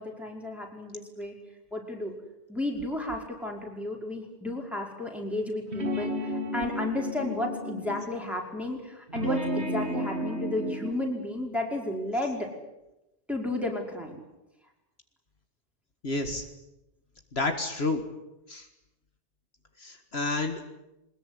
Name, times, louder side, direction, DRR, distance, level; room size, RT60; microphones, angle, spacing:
voice 1, 0.0-1.4 1.7-2.1 2.5-12.5 13.3-14.2, left 1 dB, ahead, -1 dB, 5.3 m, -33 dB
sound 1, 5.7-8.1 9.1-10.9, equal, 70° right, 3.1 m, -32 dB
voice 2, 16.0-16.5 17.3-18.0 18.5-18.7 19.8-20.6, left 2 dB, 65° left, 6 dB, 2.1 m, -30 dB
22.5 x 20.5 x 9.9 m, 0.95 s
omnidirectional pair, 1.1 m